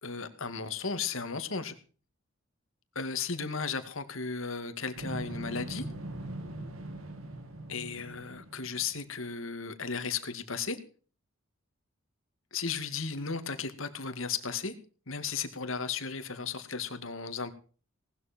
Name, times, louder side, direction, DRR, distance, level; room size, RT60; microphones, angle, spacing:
voice 1, 0.0-1.7 3.0-5.9 7.7-10.8 12.5-14.7 15.1-17.5, left 5 dB, 75° left, 9 dB, 2.3 m, -35 dB
sound 1, 5.0-9.1, right 1 dB, 85° right, 2.3 m, -41 dB
18.5 x 12.5 x 4.5 m, 0.40 s
head